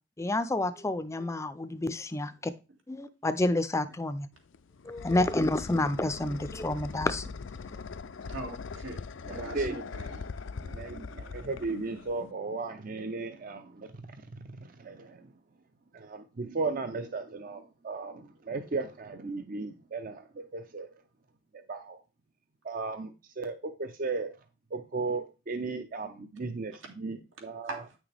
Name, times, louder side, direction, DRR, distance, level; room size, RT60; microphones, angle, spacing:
voice 1, 0.2-2.5 2.9-4.3 4.8-7.3, left 2 dB, 15° left, 0.5 m, -29 dB
sound 1, 4.4-12.3, left 4 dB, 85° left, 0.5 m, -41 dB
voice 2, 8.3-9.0 9.3-10.3 27.6-28.0, right 2 dB, 85° right, 2.3 m, -41 dB
voice 3, 9.3-9.8 10.6-13.9 14.1-15.3 15.9-20.9 21.7-22.0 22.6-24.3 24.7-27.8, right 3 dB, 45° right, 0.6 m, -36 dB
9.3 x 6.2 x 3.4 m
head